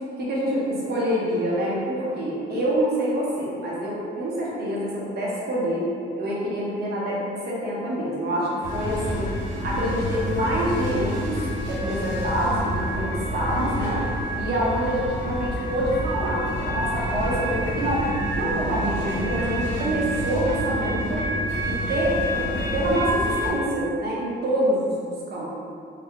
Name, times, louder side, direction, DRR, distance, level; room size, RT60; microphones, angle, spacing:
voice 1, 0.2-5.9 6.2-9.3 9.6-11.4 11.7-14.0 14.4-18.0 18.4-21.2 21.7-25.5, equal, 55° right, -6 dB, 0.9 m, -26 dB
sound 1, 8.6-23.5, equal, 65° left, 0.8 m, -28 dB
3.3 x 2.2 x 2.9 m, 2.5 s
cardioid pair, 90°, 20 cm